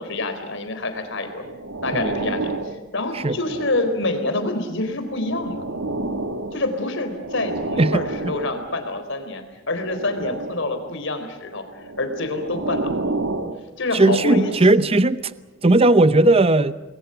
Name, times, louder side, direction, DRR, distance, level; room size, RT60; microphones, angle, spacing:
voice 1, 0.0-1.4 1.8-5.6 6.5-12.9 13.8-14.5, left 2 dB, 65° left, 7 dB, 4.1 m, -27 dB
sound 1, 1.0-4.1 4.8-9.0 9.7-10.9 11.7-15.1 15.7-15.9, right 2 dB, 80° right, 1.6 m, -31 dB
voice 2, 13.9-15.3 15.6-16.7, right 2 dB, 30° right, 14 dB, 0.8 m, -16 dB
28.0 x 21.0 x 8.0 m, 1.0 s
head